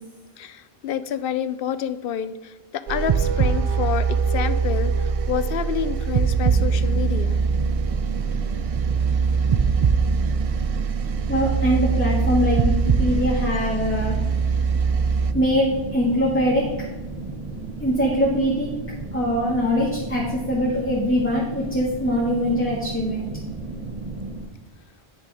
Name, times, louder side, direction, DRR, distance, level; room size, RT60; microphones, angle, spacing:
voice 1, 0.4-7.4, left 9 dB, 60° left, 13 dB, 0.8 m, -28 dB
sound 1, 2.9-15.3, right 5 dB, 55° right, 0.4 m, -22 dB
sound 2, 6.4-24.4, right 3 dB, 35° right, 1.3 m, -34 dB
voice 2, 11.3-14.2 15.3-16.6 17.8-18.7 19.1-23.3, equal, 10° left, -5 dB, 1.7 m, -22 dB
10.5 x 6.6 x 4.8 m, 1.2 s
omnidirectional pair, 1.1 m